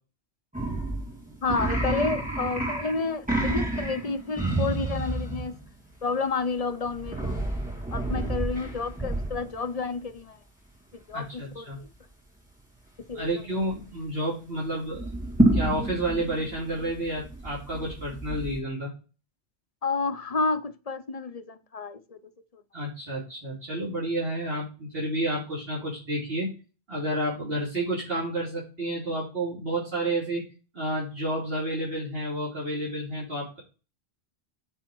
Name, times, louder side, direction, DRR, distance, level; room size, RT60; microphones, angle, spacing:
sound 1, 0.5-5.7 6.9-9.6 13.1-13.3 13.6-14.0 14.9-18.6, right 1 dB, 5° right, 2.6 m, -29 dB
voice 1, 1.4-5.6 6.0-7.4 7.9-10.4 11.1-11.9 13.1-13.3 19.8-22.2, left 4 dB, 40° left, 0.7 m, -30 dB
voice 2, 11.1-11.8 13.1-15.1 15.5-18.9 22.7-26.5 26.9-30.4 30.7-33.6, right 1 dB, 60° right, 3.4 m, -30 dB
8.8 x 4.2 x 4.6 m
omnidirectional pair, 1.1 m